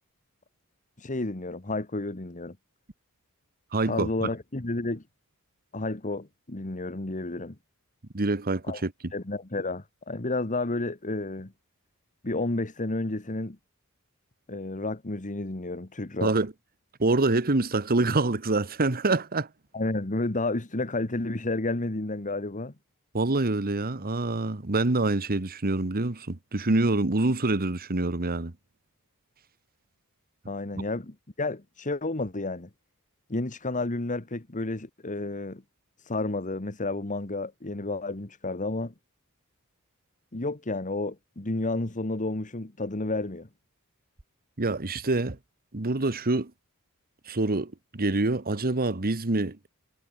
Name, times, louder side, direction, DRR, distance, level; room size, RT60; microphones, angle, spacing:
voice 1, 1.0-2.6 3.8-5.0 5.7-7.6 8.7-8.8 9.1-11.5 12.2-13.6 14.5-16.3 19.7-22.7 30.5-32.7 33.3-35.6 36.0-38.9 40.3-43.5, left 2 dB, 35° left, 1.5 m, -31 dB
voice 2, 3.7-4.3 8.1-8.9 16.2-16.5 17.0-19.5 23.1-28.5 44.6-45.4 45.7-46.5 47.3-49.6, right 2 dB, 40° right, 1.3 m, -26 dB
head